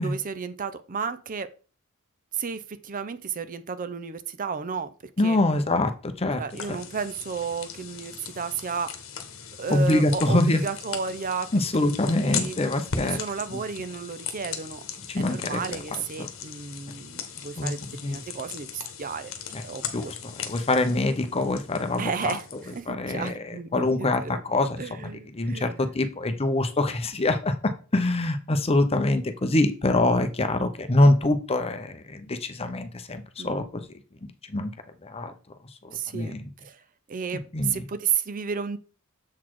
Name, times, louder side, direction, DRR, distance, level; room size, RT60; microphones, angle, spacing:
voice 1, 0.0-1.5 2.3-4.9 5.2-5.4 6.4-8.9 9.6-11.5 11.8-11.9 12.2-12.6 13.0-14.8 15.2-19.3 19.6-20.1 22.0-24.4 24.8-25.9 33.4-33.7 35.9-36.3 36.6-36.8 37.1-38.8, right 6 dB, 40° right, 13 dB, 0.5 m, -33 dB
voice 2, 5.2-6.4 9.7-10.6 11.5-13.2 13.5-13.6 15.1-15.6 16.2-16.3 17.6-18.2 19.5-19.6 19.9-22.3 22.9-23.3 23.7-24.8 25.3-27.5 27.9-33.8 34.5-34.7 35.0-35.3 35.8-36.5 37.5-37.8, left 2 dB, 30° left, 8 dB, 0.7 m, -24 dB
sound 1, 6.5-22.8, left 7 dB, 65° left, 1.1 m, -38 dB
7.4 x 4.1 x 4.6 m, 0.37 s
head